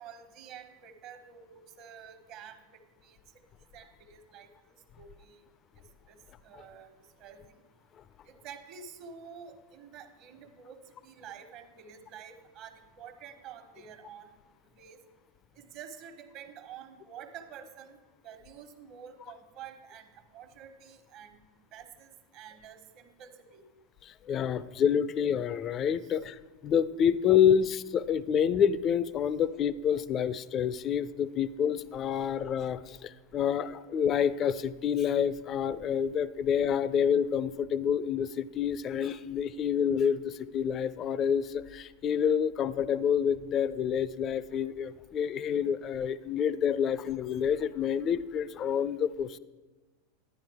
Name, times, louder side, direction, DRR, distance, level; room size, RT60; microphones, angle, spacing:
voice 1, 0.0-3.2 3.7-5.4 6.1-7.6 8.2-14.4 14.6-15.0 15.5-21.4 21.7-23.7 26.0-26.2, right 7 dB, 50° right, 7 dB, 1.3 m, -49 dB
voice 2, 24.0-49.4, left 8 dB, 40° left, 16 dB, 0.4 m, -28 dB
11.5 x 10.5 x 3.5 m, 1.2 s
hypercardioid pair, 90°, 0 cm